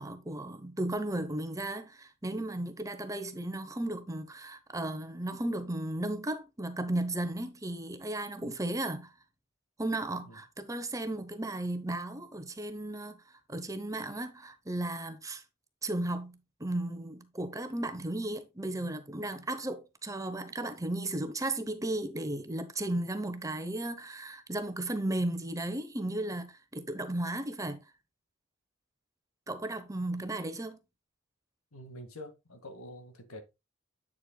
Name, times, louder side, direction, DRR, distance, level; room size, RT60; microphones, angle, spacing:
voice 1, 0.0-9.1 9.8-13.2 13.5-15.4 15.8-27.8 29.5-30.8, right 1 dB, 15° right, 0.9 m, -35 dB
voice 2, 31.7-33.4, left 1 dB, 90° left, 1.9 m, -46 dB
8.5 x 7.6 x 2.3 m
head